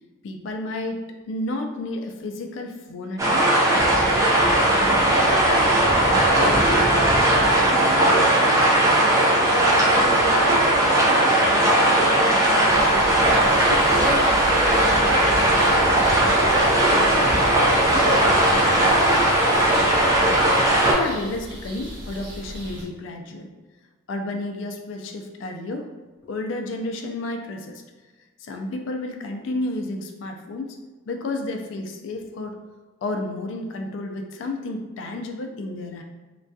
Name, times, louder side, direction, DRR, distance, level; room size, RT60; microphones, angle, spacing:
voice 1, 0.2-3.5 4.6-4.7 20.9-23.5 24.1-25.9 26.2-27.8 28.4-30.8 31.0-32.6 33.0-36.0, left 2 dB, 65° left, 4 dB, 0.3 m, -31 dB
sound 1, 3.2-20.9, right 1 dB, 15° right, 0.3 m, -18 dB
voice 2, 4.7-5.7 6.3-8.6 9.3-11.6 11.9-13.0 13.5-19.3, equal, 15° left, -12 dB, 0.9 m, -33 dB
sound 2, 12.7-22.8, equal, 60° right, 0.6 m, -36 dB
2.2 x 2.2 x 2.6 m, 1.2 s
head